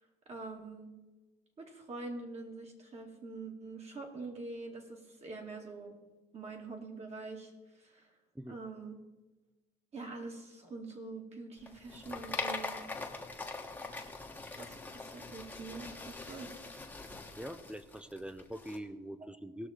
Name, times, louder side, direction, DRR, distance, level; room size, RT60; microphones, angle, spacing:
voice 1, 0.3-0.9 1.6-6.0 6.3-7.5 7.8-8.1 8.5-9.0 9.9-12.8 13.8-14.0 14.5-16.6, right 3 dB, 40° right, 1 dB, 2.4 m, -45 dB
sound 1, 11.6-18.8, left 3 dB, 10° left, 1.3 m, -42 dB
voice 2, 17.3-19.7, equal, 5° right, 12 dB, 0.6 m, -43 dB
18.0 x 6.3 x 4.4 m, 1.1 s
cardioid pair, 110°, 17 cm